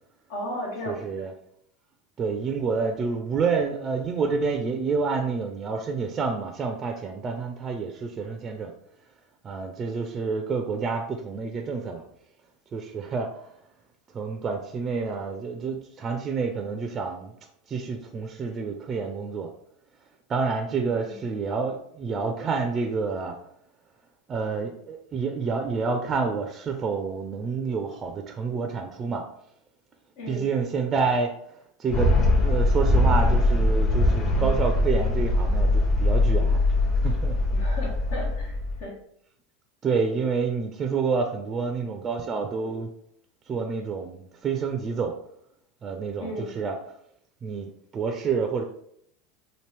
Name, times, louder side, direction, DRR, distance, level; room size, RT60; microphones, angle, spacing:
voice 1, 0.3-1.2 20.7-21.2 30.2-30.5 37.5-38.9 46.2-46.5, left 1 dB, 75° left, -2 dB, 1.2 m, -35 dB
voice 2, 0.9-1.3 2.2-8.7 9.4-12.0 12.7-13.4 14.1-17.3 17.7-19.5 20.3-23.3 24.3-29.2 30.3-31.3 31.8-32.1 32.4-36.6 37.0-37.4 39.8-42.9 43.5-45.2 45.8-46.8 47.4-48.6, right 5 dB, 30° right, 5 dB, 0.4 m, -28 dB
sound 1, 31.9-38.8, left 2 dB, 45° left, 0.9 m, -22 dB
2.9 x 2.6 x 3.3 m, 0.70 s
hypercardioid pair, 100°, 0 cm